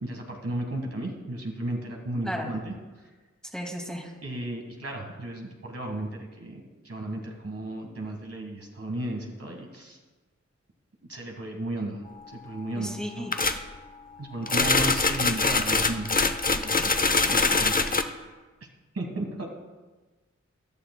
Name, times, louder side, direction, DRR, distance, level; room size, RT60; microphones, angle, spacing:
voice 1, 0.0-2.7 4.2-10.0 11.1-13.3 14.2-16.2 16.5-16.9 17.3-17.7 18.0-18.2 18.9-19.5, right 1 dB, 55° right, 1 dB, 1.5 m, -34 dB
voice 2, 3.5-4.1 12.7-13.3, equal, ahead, 1 dB, 2.1 m, -34 dB
Typewriter typing test (typewriter turned on), 13.3-13.6 14.5-18.0, left 3 dB, 30° left, 0.7 m, -23 dB
14.0 x 11.5 x 2.2 m, 1.3 s
wide cardioid pair, 55°, 29 cm